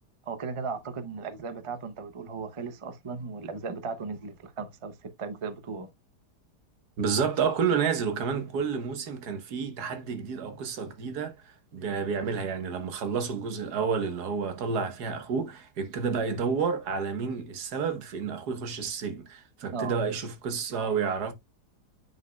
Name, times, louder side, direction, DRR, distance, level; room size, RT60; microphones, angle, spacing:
voice 1, 0.3-5.9 19.7-20.1, right 4 dB, 50° right, 0.3 m, -36 dB
voice 2, 7.0-21.3, right 6 dB, 70° right, 1.6 m, -30 dB
9.2 x 5.2 x 2.2 m
omnidirectional pair, 1.8 m